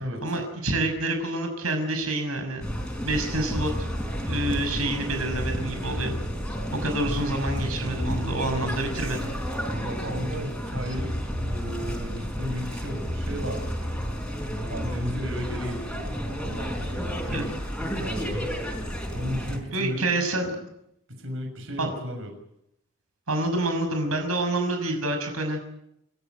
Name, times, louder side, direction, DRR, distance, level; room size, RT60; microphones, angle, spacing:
voice 1, 0.0-2.7 3.0-3.9 4.2-6.1 6.7-9.3 17.3-17.4 19.7-20.7 21.8-21.9 23.3-25.6, right 2 dB, 85° right, 5 dB, 6.0 m, -28 dB
sound 1, 2.6-19.6, equal, 5° left, 4.6 m, -31 dB
voice 2, 9.6-13.9 14.6-16.2 16.4-17.1 17.9-18.5 19.1-20.1 21.1-22.3, equal, 65° right, 4 dB, 6.1 m, -34 dB
28.5 x 14.5 x 9.3 m, 0.76 s
head